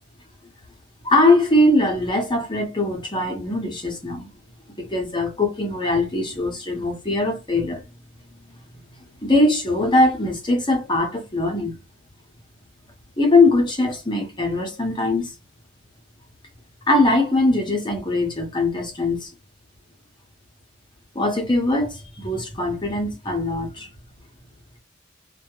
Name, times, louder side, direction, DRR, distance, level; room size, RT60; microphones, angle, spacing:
voice 1, 1.0-4.3 4.8-7.8 9.2-11.8 13.2-15.3 16.9-19.3 21.1-23.9, left 2 dB, 25° left, 0.7 m, -21 dB
2.2 x 2.1 x 2.9 m
head